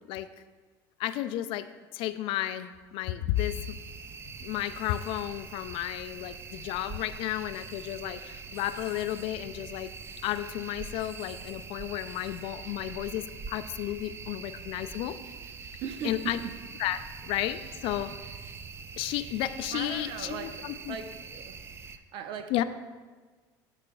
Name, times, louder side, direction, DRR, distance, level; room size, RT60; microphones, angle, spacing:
voice 1, 1.0-1.7 1.9-3.8 4.4-9.9 10.2-15.2 16.0-16.4 16.8-18.1 19.0-21.0 22.5-22.6, left 13 dB, 65° left, 12 dB, 0.3 m, -32 dB
sound 1, 3.4-22.0, right 5 dB, 25° right, 0.4 m, -43 dB
voice 2, 15.8-16.6 19.7-21.6 21.9-22.6, right 7 dB, 60° right, 8 dB, 0.6 m, -39 dB
12.0 x 4.9 x 2.3 m, 1.4 s
supercardioid pair, 100°, 10 cm